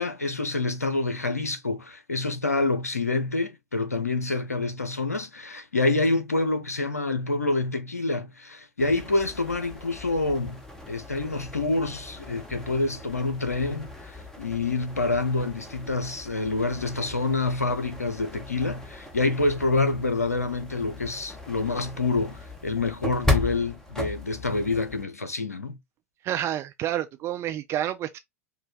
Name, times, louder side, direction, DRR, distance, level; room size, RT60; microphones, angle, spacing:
voice 1, 0.0-10.6 10.9-25.8, left 3 dB, 85° left, 0.6 m, -27 dB
sound 1, 8.8-25.0, left 2 dB, 5° left, 1.1 m, -36 dB
voice 2, 26.2-28.2, right 11 dB, 35° right, 0.4 m, -29 dB
4.9 x 2.3 x 3.3 m
figure-of-eight pair, 85°, 8 cm